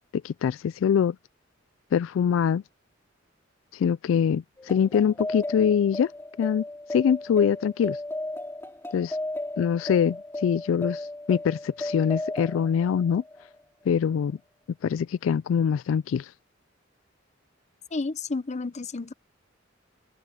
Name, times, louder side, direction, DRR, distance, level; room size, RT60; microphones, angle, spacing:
voice 1, 0.2-1.2 1.9-2.6 3.7-6.1 6.4-6.6 6.9-8.0 8.9-9.2 9.6-13.2 13.9-14.4 14.8-16.3, left 7 dB, 75° left, 0.3 m, -24 dB
sound 1, 4.6-13.6, left 1 dB, 10° left, 2.6 m, -35 dB
voice 2, 17.9-19.1, left 3 dB, 35° left, 0.7 m, -31 dB
head